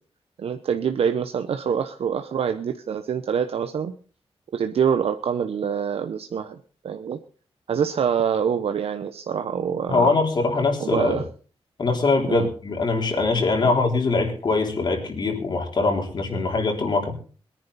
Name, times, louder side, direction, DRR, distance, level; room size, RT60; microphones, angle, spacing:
voice 1, 0.4-3.9 4.5-6.6 6.8-7.2 7.7-10.2 10.8-11.2 12.3-12.5 13.6-13.7 16.3-16.5, right 7 dB, 80° right, 7 dB, 1.0 m, -25 dB
voice 2, 9.9-11.2 11.8-17.1, left 3 dB, 45° left, 3 dB, 3.7 m, -22 dB
22.0 x 10.5 x 4.2 m, 0.40 s
wide cardioid pair, 175°, 10 cm